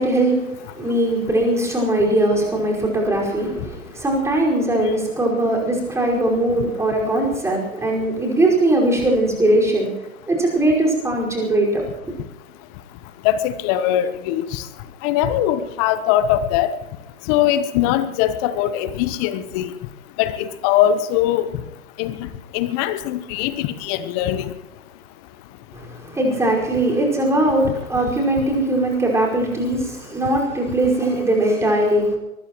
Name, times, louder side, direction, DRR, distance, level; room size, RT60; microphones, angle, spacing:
voice 1, 0.0-9.9 10.3-12.1 25.7-32.2, right 1 dB, 5° right, -1 dB, 5.0 m, -20 dB
voice 2, 13.2-14.6 15.0-16.7 17.3-19.7 20.2-21.5 22.0-22.2 22.5-24.5, left 11 dB, 25° left, 13 dB, 1.0 m, -21 dB
23.5 x 20.0 x 3.1 m, 1.0 s
hypercardioid pair, 130°, 42 cm